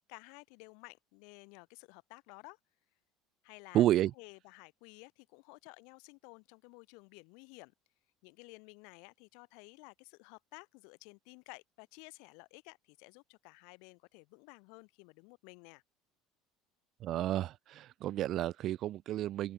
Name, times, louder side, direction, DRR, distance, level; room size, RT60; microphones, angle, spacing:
voice 1, 0.1-2.6 3.4-3.8 4.1-7.7 8.2-15.8, left 36 dB, 65° left, 4.5 m, -54 dB
voice 2, 3.7-4.1 17.0-19.5, right 13 dB, 35° right, 0.5 m, -31 dB
cardioid pair, 180°, 0 cm